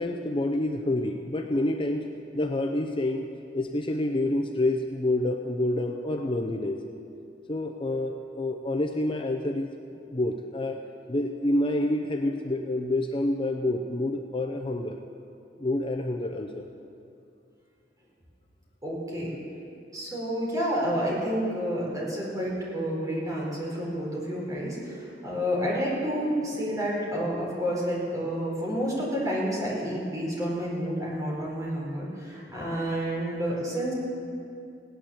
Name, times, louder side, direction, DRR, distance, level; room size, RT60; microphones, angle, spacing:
voice 1, 0.0-2.1 2.3-3.3 3.5-6.8 7.5-9.7 10.1-10.8 11.1-15.0 15.6-16.7, left 1 dB, 30° left, 4 dB, 0.6 m, -28 dB
voice 2, 18.8-19.3 19.9-33.9, equal, 20° right, -5 dB, 4.5 m, -29 dB
17.0 x 10.0 x 7.2 m, 2.6 s
head